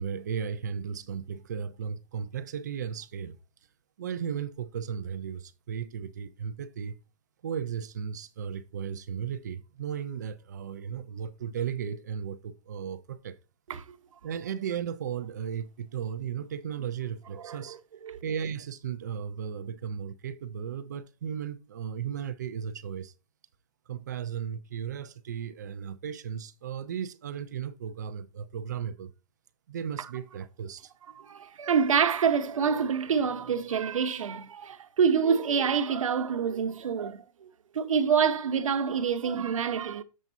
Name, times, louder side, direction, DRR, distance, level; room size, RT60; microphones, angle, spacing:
voice 1, 0.0-3.4 4.0-6.9 7.4-13.4 14.2-17.8 18.2-23.1 23.9-29.1 29.7-30.9, right 8 dB, 30° right, 0.5 m, -35 dB
voice 2, 31.2-37.2 37.7-40.0, right 6 dB, 60° right, 1.1 m, -26 dB
7.9 x 7.4 x 2.6 m
hypercardioid pair, 170°, 19 cm